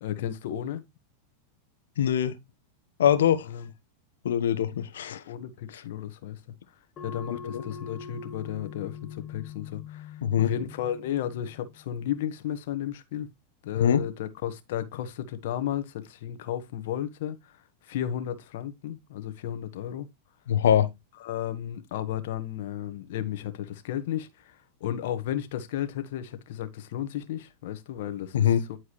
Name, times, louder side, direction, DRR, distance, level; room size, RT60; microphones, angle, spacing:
voice 1, 0.0-0.8 3.5-3.7 5.3-6.4 7.0-13.3 13.6-17.6 17.8-20.1 21.2-28.5, left 11 dB, 70° left, 1.2 m, -33 dB
voice 2, 2.0-2.3 3.0-3.5 4.2-5.2 7.4-7.6 10.2-10.5 13.8-14.0 20.5-20.9 28.3-28.6, left 9 dB, 85° left, 1.0 m, -23 dB
sound 1, 7.0-12.1, left 6 dB, 30° left, 1.2 m, -43 dB
10.0 x 4.7 x 3.0 m
hypercardioid pair, 120°, 0 cm